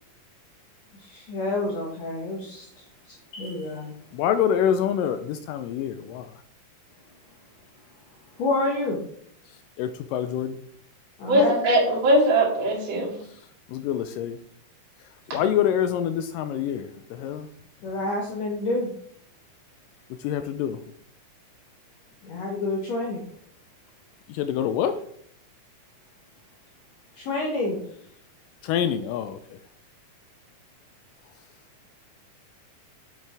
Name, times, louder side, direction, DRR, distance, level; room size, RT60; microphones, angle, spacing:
voice 1, 0.9-2.7 3.1-3.9 8.4-9.0 11.2-11.6 17.8-18.9 22.2-23.2 27.2-27.8, left 2 dB, 65° left, 2.0 m, -28 dB
voice 2, 4.1-6.3 9.8-10.6 13.7-14.4 15.3-17.5 20.2-20.8 24.3-24.9 28.6-29.4, left 9 dB, 80° left, 2.1 m, -26 dB
voice 3, 11.3-13.1, equal, 50° right, 3.6 m, -20 dB
7.6 x 7.3 x 3.4 m
omnidirectional pair, 3.9 m